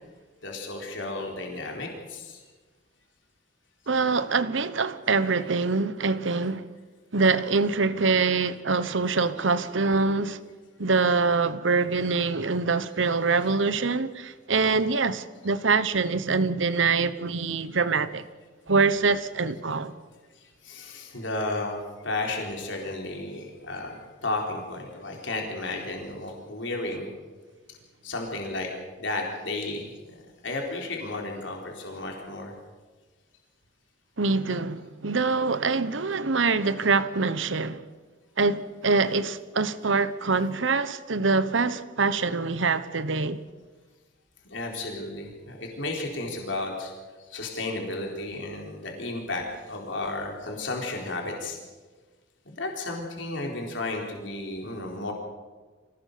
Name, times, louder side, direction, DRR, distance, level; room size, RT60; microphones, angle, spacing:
voice 1, 0.4-2.4 20.4-21.8 22.0-27.1 28.0-28.7 29.0-32.5 44.4-46.9 47.3-51.6 52.4-55.1, left 2 dB, 70° left, 4.1 m, -33 dB
voice 2, 3.9-6.7 7.1-10.4 10.8-18.3 18.7-19.9 34.2-37.8 38.4-43.4, right 4 dB, 70° right, 1.1 m, -24 dB
25.0 x 17.5 x 6.8 m
head